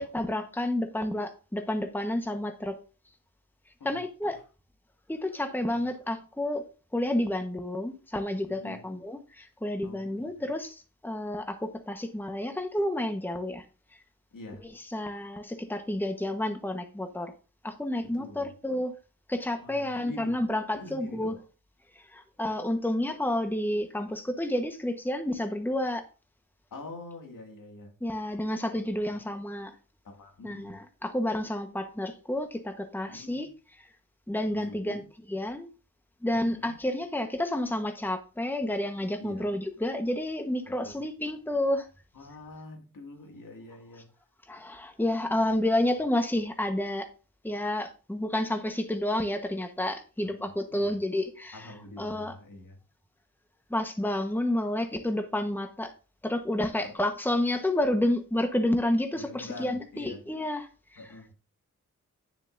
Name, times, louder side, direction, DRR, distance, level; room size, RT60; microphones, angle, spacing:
voice 1, 0.0-2.8 3.8-4.4 5.1-6.6 6.9-13.6 14.9-17.3 17.6-18.9 19.3-21.3 21.9-26.0 28.0-29.7 30.4-33.5 33.8-33.9 34.3-35.7 36.2-41.9 44.5-47.1 47.4-51.7 52.0-52.3 53.7-55.9 56.2-61.0, left 1 dB, 5° left, 1.1 m, -30 dB
voice 2, 3.8-4.3 5.7-5.8 8.5-8.9 9.8-10.5 14.3-14.6 18.0-18.5 19.6-20.4 20.7-21.4 26.7-27.9 29.0-29.1 30.0-30.8 33.0-33.5 34.5-35.1 36.3-36.7 39.2-39.5 40.6-41.0 42.1-44.1 50.2-51.0 51.5-52.8 56.8-56.9 59.1-60.2 61.0-61.3, left 2 dB, 75° left, 2.2 m, -46 dB
9.4 x 7.1 x 2.6 m
cardioid pair, 50°, 33 cm